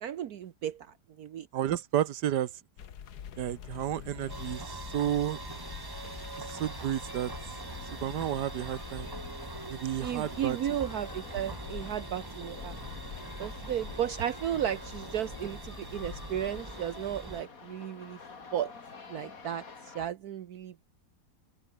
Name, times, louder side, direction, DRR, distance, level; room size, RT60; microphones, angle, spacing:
voice 1, 0.0-0.9 1.2-1.5 10.0-12.7 13.4-18.2 18.5-18.7 19.1-20.9, right 10 dB, 65° right, 1.4 m, -34 dB
voice 2, 1.5-2.5 3.4-5.4 6.4-7.3 7.9-9.1 9.7-10.8, right 11 dB, 85° right, 1.5 m, -32 dB
sound 1, 2.8-16.6, left 8 dB, 75° left, 1.8 m, -47 dB
sound 2, 4.3-17.4, right 3 dB, 20° right, 0.8 m, -43 dB
sound 3, 6.5-20.1, left 4 dB, 55° left, 2.9 m, -49 dB
omnidirectional pair, 1.7 m